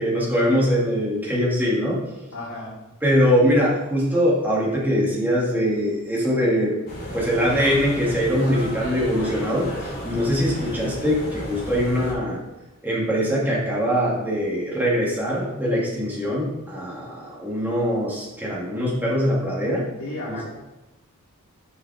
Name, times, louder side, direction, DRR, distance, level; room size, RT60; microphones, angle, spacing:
voice 1, 0.0-2.0 3.0-6.8 7.1-12.4 12.8-19.9 20.3-20.4, equal, 10° right, -6 dB, 2.3 m, -22 dB
voice 2, 2.3-2.8 20.0-20.5, left 1 dB, 70° left, -8 dB, 2.5 m, -33 dB
sound 1, 6.9-12.1, equal, 45° left, 2.7 m, -33 dB
11.0 x 5.6 x 3.5 m, 1.0 s
head